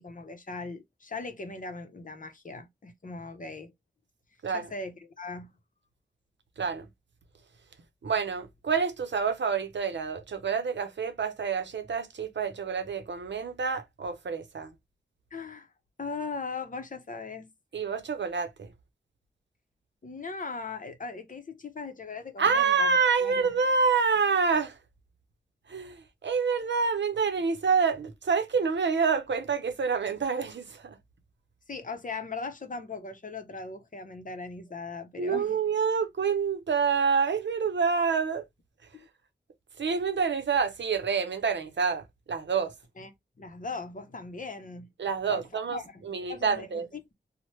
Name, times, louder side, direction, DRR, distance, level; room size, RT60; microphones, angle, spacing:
voice 1, 0.0-3.7 4.5-5.5 15.3-15.7 16.0-17.5 20.0-23.5 31.7-35.6 38.9-39.1 43.0-43.1 43.4-44.9 45.3-46.0 46.3-47.1, left 4 dB, 45° left, 0.7 m, -39 dB
voice 2, 8.0-14.7 17.7-18.7 22.4-24.8 25.7-31.0 35.2-38.4 39.8-42.7 45.0-45.8 46.1-46.9, right 5 dB, 90° right, 0.6 m, -27 dB
3.0 x 2.1 x 2.9 m
wide cardioid pair, 75°, 18 cm